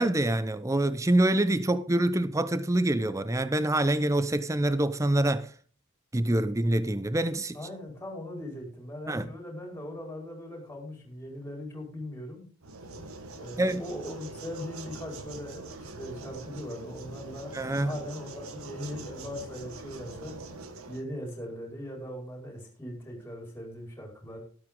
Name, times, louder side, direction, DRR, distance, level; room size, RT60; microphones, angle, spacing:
voice 1, 0.0-5.5 6.1-7.6 9.1-9.3 13.6-13.8 17.5-17.9, right 1 dB, 15° right, 0.5 m, -26 dB
voice 2, 7.5-12.4 13.3-20.4 20.9-24.4, left 1 dB, 10° left, 4.7 m, -40 dB
sound 1, 12.6-21.0, right 2 dB, 80° right, 1.5 m, -43 dB
13.0 x 12.0 x 3.7 m
head